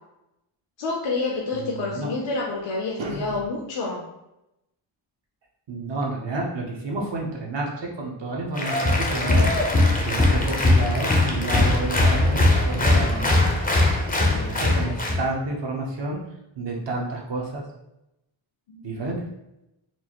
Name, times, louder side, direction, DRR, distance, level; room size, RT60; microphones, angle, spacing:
voice 1, 0.8-4.0 18.7-18.8, left 3 dB, 70° left, -2 dB, 0.6 m, -28 dB
voice 2, 1.5-2.1 3.0-3.4 5.7-7.7 8.0-9.5 10.0-13.4 14.3-16.2 16.6-17.6 18.8-19.2, right 2 dB, 60° right, -1 dB, 0.8 m, -30 dB
Applause, 8.6-15.2, left 2 dB, 20° left, 0.5 m, -20 dB
sound 1, 10.7-14.1, equal, 30° right, 0.5 m, -38 dB
4.5 x 2.4 x 2.8 m, 0.89 s
wide cardioid pair, 165°, 48 cm